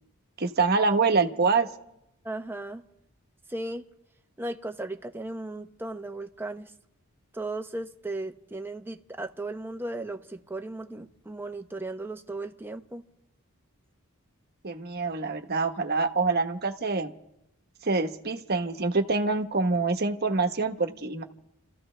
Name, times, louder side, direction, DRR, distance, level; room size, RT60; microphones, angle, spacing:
voice 1, 0.4-1.7 14.6-17.1 17.8-21.2, right 4 dB, 45° right, 1.1 m, -25 dB
voice 2, 2.2-2.8 3.5-3.8 4.4-6.7 7.3-13.0, right 2 dB, 10° right, 0.8 m, -36 dB
30.0 x 14.5 x 3.3 m
head